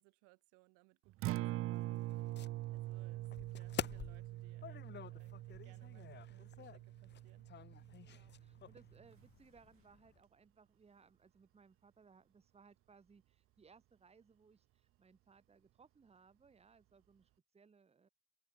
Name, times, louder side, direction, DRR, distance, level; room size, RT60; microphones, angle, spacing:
voice 1, 0.0-2.4 2.7-7.5 7.7-8.0, right 34 dB, 90° right, 4.8 m, -68 dB
Acoustic guitar, 1.1-9.3, right 16 dB, 50° right, 0.5 m, -44 dB
sound 1, 1.7-10.2, left 9 dB, 35° left, 1.4 m, -50 dB
voice 2, 7.9-18.1, right 5 dB, 20° right, 1.9 m, -65 dB
cardioid pair, 120°, 30 cm